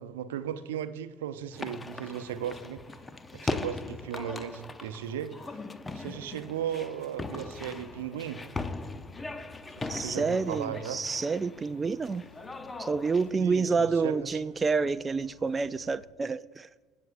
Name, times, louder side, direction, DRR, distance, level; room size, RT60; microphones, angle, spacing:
voice 1, 0.0-2.8 3.3-5.6 5.9-8.4 9.8-11.0 13.4-14.4, right 9 dB, 80° right, 0.6 m, -36 dB
sound 1, 1.5-13.3, left 3 dB, 20° left, 0.7 m, -39 dB
sound 2, 7.6-16.1, left 5 dB, 90° left, 0.7 m, -57 dB
voice 2, 9.9-12.3 12.8-16.7, right 4 dB, 25° right, 0.3 m, -28 dB
20.5 x 8.4 x 2.5 m
hypercardioid pair, 65°, 0 cm